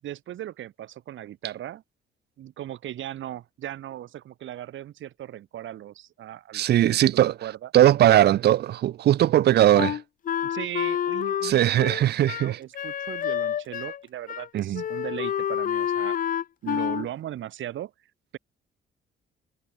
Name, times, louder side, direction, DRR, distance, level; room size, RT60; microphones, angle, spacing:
voice 1, 0.0-1.8 2.4-6.7 7.4-7.7 10.4-16.2 16.6-17.9, right 12 dB, 75° right, 4.9 m, -37 dB
voice 2, 6.5-7.4 7.7-10.0 11.4-12.6 14.5-14.8, right 12 dB, 55° right, 0.4 m, -19 dB
Wind instrument woodwind instrument, 9.8-14.0 14.3-14.5 14.7-17.1, left 9 dB, 45° left, 0.5 m, -28 dB
cardioid pair, 90°, 20 cm